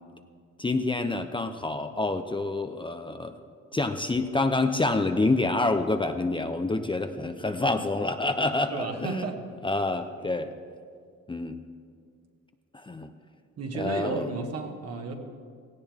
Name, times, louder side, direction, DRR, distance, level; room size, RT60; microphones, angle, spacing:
voice 1, 0.6-3.3 3.7-9.3 9.6-10.5 11.3-11.6 12.7-13.1 13.7-14.3, left 2 dB, 15° left, 7 dB, 0.7 m, -27 dB
voice 2, 8.7-9.4 13.6-15.2, right 4 dB, 55° right, 3 dB, 1.9 m, -33 dB
17.5 x 16.0 x 3.6 m, 2.1 s
cardioid pair, 90°, 30 cm